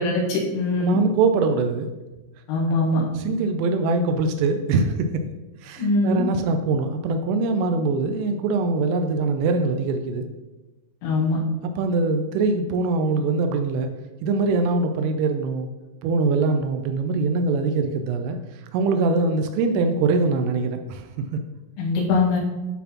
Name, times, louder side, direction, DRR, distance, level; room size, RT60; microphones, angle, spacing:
voice 1, 0.0-1.0 2.5-3.0 5.8-6.2 11.0-11.4 21.8-22.4, left 2 dB, 85° left, -3 dB, 4.1 m, -22 dB
voice 2, 0.8-1.9 3.3-5.3 5.6-10.3 11.8-13.9 14.2-15.7 16.0-21.1 21.3-21.4, right 3 dB, 85° right, 6 dB, 3.0 m, -23 dB
11.5 x 4.1 x 2.9 m, 1.1 s
omnidirectional pair, 5.8 m